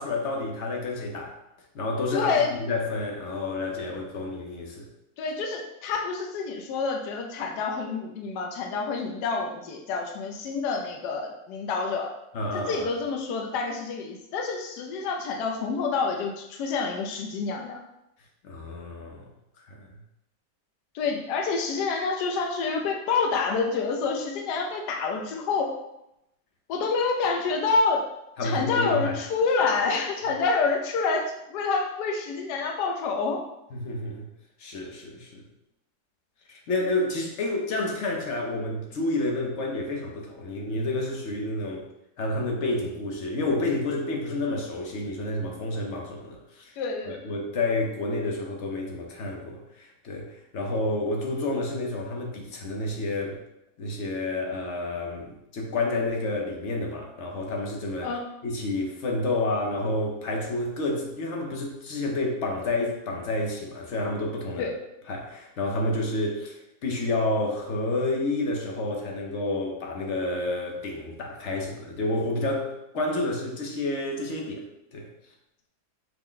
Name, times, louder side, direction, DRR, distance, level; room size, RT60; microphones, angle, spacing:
voice 1, 0.0-1.4 1.7-4.9 12.3-12.9 18.4-19.3 19.7-19.8 28.4-29.1 33.7-34.3 34.6-35.5 36.5-41.9 42.2-46.7 47.2-53.4 53.8-58.1 58.4-64.7 65.1-74.7 74.9-75.1, left 2 dB, 55° left, 0 dB, 0.8 m, -29 dB
voice 2, 2.1-2.5 5.2-12.1 12.5-17.8 20.9-25.7 26.7-28.0 28.4-33.4 46.8-47.2 58.0-58.2 64.6-64.7, left 4 dB, 80° left, 2 dB, 1.2 m, -27 dB
5.7 x 2.1 x 3.8 m, 0.85 s
omnidirectional pair, 1.8 m